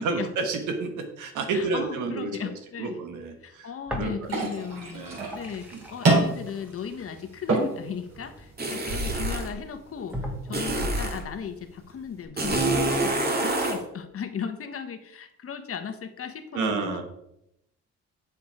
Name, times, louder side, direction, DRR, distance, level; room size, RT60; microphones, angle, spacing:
voice 1, 0.0-4.3 4.9-5.3 16.5-17.0, right 4 dB, 80° right, 5 dB, 1.6 m, -30 dB
voice 2, 1.5-3.0 3.4-5.1 5.3-10.2 10.5-17.0, left 7 dB, 50° left, 9 dB, 1.1 m, -36 dB
sound 1, 3.9-4.6 5.0-8.9 9.5-9.6 10.1-11.0, equal, 5° right, 2.0 m, -39 dB
sound 2, 4.2-12.2, right 2 dB, 55° right, 3.9 m, -30 dB
sound 3, 8.6-9.5 10.5-11.2 12.4-13.8, right 2 dB, 30° right, 2.0 m, -26 dB
7.8 x 6.8 x 4.8 m, 0.81 s
cardioid pair, 90°, 30 cm